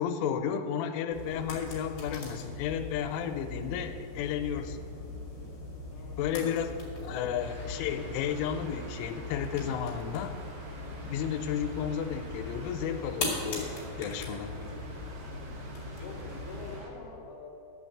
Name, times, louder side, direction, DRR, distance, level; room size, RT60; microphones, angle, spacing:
voice 1, 0.0-4.9 6.2-6.7 7.1-10.4 11.0-14.5, left 8 dB, 90° left, 7 dB, 3.2 m, -33 dB
sound 1, 1.1-16.8, left 2 dB, 35° left, 2.4 m, -40 dB
voice 2, 5.9-6.5 7.0-7.2 10.2-10.5 15.3-15.5 16.0-17.5, left 4 dB, 70° left, -3 dB, 1.5 m, -46 dB
sound 2, 7.4-16.9, equal, 85° right, 1.6 m, -47 dB
12.0 x 5.9 x 7.6 m, 2.7 s
omnidirectional pair, 5.6 m